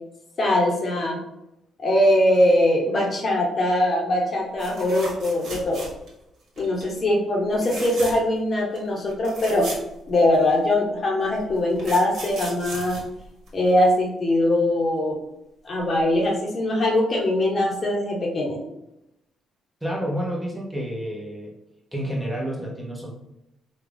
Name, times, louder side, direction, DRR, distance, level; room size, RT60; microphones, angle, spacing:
voice 1, 0.4-1.2 1.8-5.8 6.6-9.7 10.1-13.0 13.5-15.2 15.6-18.6, left 1 dB, 40° left, -1 dB, 0.8 m, -21 dB
sound 1, 4.6-6.2 6.6-6.9 7.5-8.4 8.8-8.9 9.1-10.6 11.3-13.9 15.8-16.0 16.3-16.4, right 2 dB, 70° right, 1.1 m, -37 dB
voice 2, 19.8-21.5 21.9-23.1, equal, 5° right, -3 dB, 0.8 m, -29 dB
3.5 x 2.3 x 3.4 m, 0.86 s
cardioid pair, 90°, 0 cm